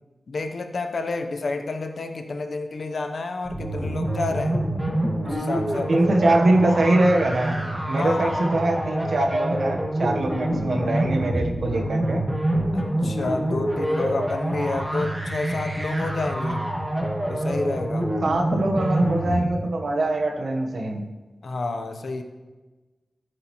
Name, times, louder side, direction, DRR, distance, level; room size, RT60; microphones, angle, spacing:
voice 1, 0.3-4.6 5.2-6.1 8.0-8.3 12.7-16.7 17.3-18.1 21.4-22.2, left 3 dB, 75° left, 6 dB, 0.8 m, -30 dB
sound 1, 3.4-19.5, right 1 dB, 15° right, 1.8 m, -26 dB
voice 2, 5.9-12.2 18.2-21.1, right 2 dB, 80° right, 3 dB, 1.1 m, -23 dB
14.0 x 7.7 x 3.1 m, 1.2 s
wide cardioid pair, 115°, 0 cm